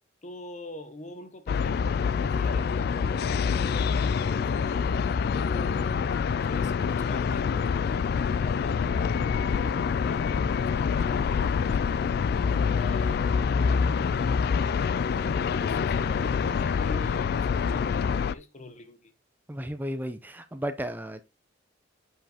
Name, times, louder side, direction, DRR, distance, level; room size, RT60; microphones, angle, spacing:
voice 1, 0.2-5.0 5.3-6.1 6.5-12.0 12.7-14.6 15.1-19.2, left 2 dB, 40° left, 0.9 m, -44 dB
sound 1, 1.5-18.3, left 6 dB, 55° left, 0.3 m, -26 dB
voice 2, 19.5-21.2, equal, 10° right, 0.6 m, -34 dB
7.9 x 5.1 x 2.9 m
head